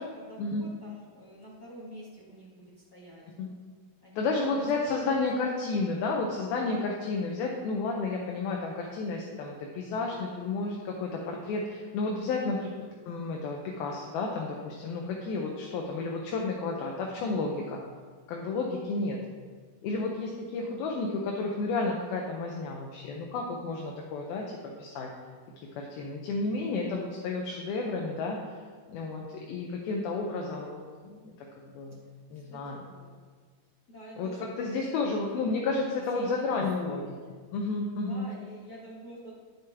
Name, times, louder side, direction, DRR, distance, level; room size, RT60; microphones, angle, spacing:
voice 1, 0.0-3.2 4.0-5.5 32.3-33.2 33.9-35.4 35.8-37.0 37.9-39.3, equal, 40° left, -7 dB, 1.7 m, -48 dB
voice 2, 4.2-12.7 13.1-17.8 18.3-19.3 19.8-25.1 25.6-28.4 28.9-32.0 32.3-32.8 34.2-34.3 34.6-37.2 37.5-38.3, left 3 dB, 85° left, 0 dB, 2.7 m, -32 dB
10.5 x 6.4 x 3.5 m, 1.5 s
omnidirectional pair, 4.2 m